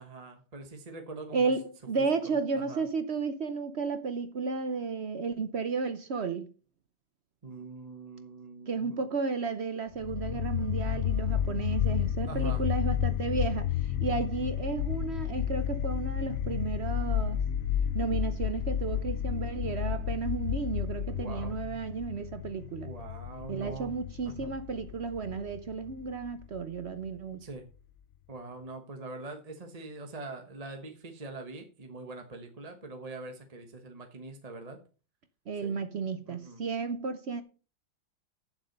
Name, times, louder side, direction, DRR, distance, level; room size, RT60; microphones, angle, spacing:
voice 1, 0.0-1.4 2.5-2.8 7.4-9.0 12.3-12.6 21.1-21.5 22.8-23.9 24.2-24.5 27.4-27.7 28.3-34.8 35.6-35.8 36.3-36.6, right 3 dB, 25° right, 0.9 m, -43 dB
voice 2, 1.3-6.5 8.7-17.4 17.9-22.9 23.5-27.4 35.5-37.4, right 4 dB, 60° right, 0.6 m, -33 dB
sound 1, 10.0-27.0, left 10 dB, 60° left, 0.9 m, -32 dB
8.7 x 7.4 x 5.3 m
omnidirectional pair, 2.1 m